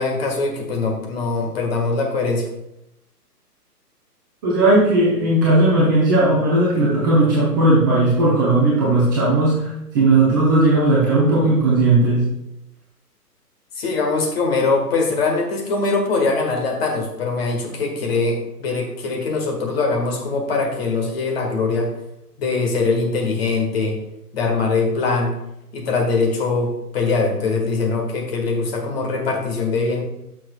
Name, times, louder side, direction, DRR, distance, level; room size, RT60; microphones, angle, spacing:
voice 1, 0.0-2.4 13.7-21.9 22.4-24.0 24.3-25.3 25.7-30.0, left 3 dB, 40° left, 1 dB, 1.7 m, -22 dB
voice 2, 4.4-12.2, right 2 dB, 15° right, -6 dB, 0.7 m, -16 dB
11.5 x 6.2 x 2.3 m, 0.84 s
figure-of-eight pair, 130°, 48 cm